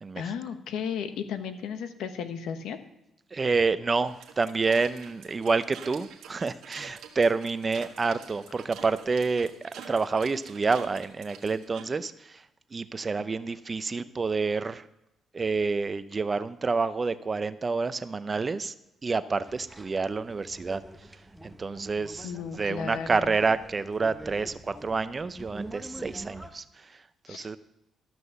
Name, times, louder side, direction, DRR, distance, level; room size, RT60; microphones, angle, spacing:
voice 1, 0.2-2.8 13.2-13.3 22.2-23.4 27.3-27.5, left 7 dB, 85° left, 9 dB, 1.0 m, -34 dB
voice 2, 3.3-9.5 9.9-12.3 12.7-14.8 15.3-18.7 19.0-20.8 21.4-22.3 22.6-26.6 27.3-27.6, right 4 dB, 30° right, 13 dB, 0.6 m, -28 dB
sound 1, 4.0-11.8, right 7 dB, 80° right, 1.5 m, -47 dB
sound 2, 19.5-26.5, right 1 dB, 5° right, 0.9 m, -45 dB
13.0 x 6.1 x 6.8 m, 0.88 s
cardioid pair, 90°, 0 cm